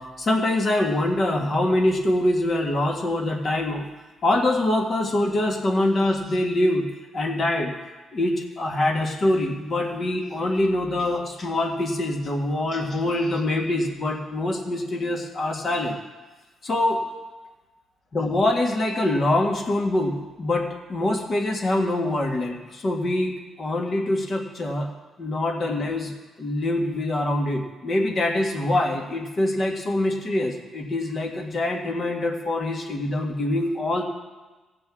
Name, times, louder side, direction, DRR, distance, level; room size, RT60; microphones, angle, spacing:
voice 1, 0.0-3.9 4.2-6.9 7.1-7.8 8.1-16.0 16.6-17.0 18.1-24.9 25.2-34.0, left 1 dB, 45° left, 2 dB, 1.8 m, -24 dB
16.5 x 7.7 x 3.7 m, 1.2 s
cardioid pair, 80°, 0 cm